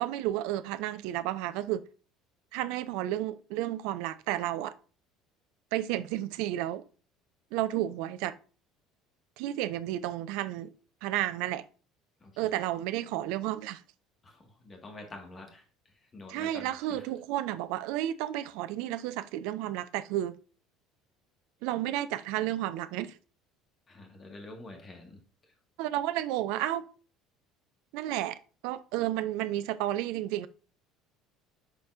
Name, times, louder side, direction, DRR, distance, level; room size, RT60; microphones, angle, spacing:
voice 1, 0.0-1.8 2.5-4.7 5.7-6.8 7.5-8.4 9.4-10.7 11.0-11.7 12.4-13.8 16.3-20.4 21.6-23.2 25.8-26.8 27.9-28.4 28.6-30.5, right 13 dB, 60° right, 0.4 m, -32 dB
voice 2, 12.2-12.5 14.2-17.1 23.9-25.5, left 2 dB, 30° left, 1.6 m, -48 dB
10.5 x 4.2 x 2.5 m
figure-of-eight pair, 60°, 0 cm